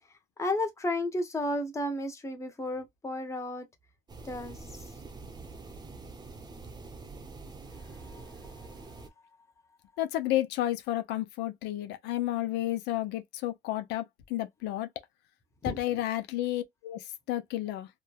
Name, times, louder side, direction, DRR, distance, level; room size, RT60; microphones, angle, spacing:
voice 1, 0.4-3.7 4.2-4.6 15.7-15.8, left 1 dB, 15° left, 0.8 m, -32 dB
sound 1, 4.1-9.1, right 3 dB, 25° right, 0.7 m, -45 dB
voice 2, 10.0-14.9 15.6-17.9, left 14 dB, 85° left, 0.5 m, -31 dB
3.1 x 2.2 x 2.3 m
cardioid pair, 110°, 17 cm